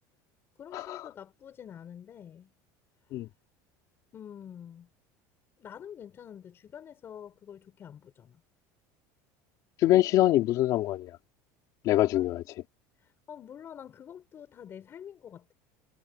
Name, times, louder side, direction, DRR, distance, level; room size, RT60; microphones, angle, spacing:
voice 1, 0.6-2.5 4.1-4.9 5.6-8.4 12.1-12.6 13.0-15.5, left 9 dB, 30° left, 7.4 m, -47 dB
voice 2, 9.8-11.1 11.8-12.4, left 15 dB, 45° left, 2.8 m, -24 dB
cardioid pair, 160°, 8 cm